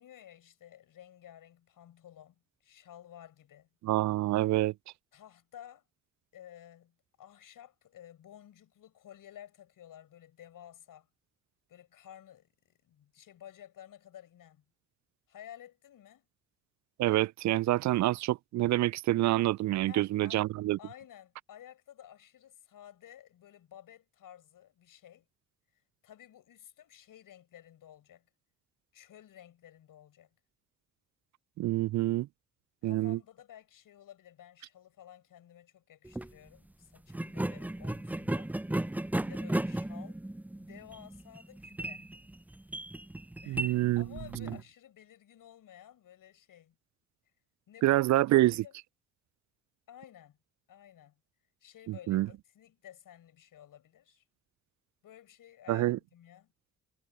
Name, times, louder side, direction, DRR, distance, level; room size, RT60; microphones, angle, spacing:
voice 1, 0.0-3.7 5.1-5.9 6.3-11.1 11.7-14.6 15.3-16.3 19.8-20.5 20.8-25.3 25.7-28.3 28.9-30.3 32.8-38.5 39.2-40.2 40.6-42.1 43.4-46.8 47.7-48.0 48.5-48.8 49.9-50.4 50.7-51.2 51.6-54.2 55.0-56.5, left 11 dB, 60° left, 6.2 m, -53 dB
voice 2, 3.8-4.7 17.0-20.8 31.6-32.3 32.8-33.2 43.5-44.1 47.8-48.6 51.9-52.3 55.7-56.0, right 16 dB, 50° right, 0.5 m, -27 dB
sound 1, 36.0-36.3 37.1-44.6, right 1 dB, 5° right, 0.6 m, -35 dB
hypercardioid pair, 45°, 37 cm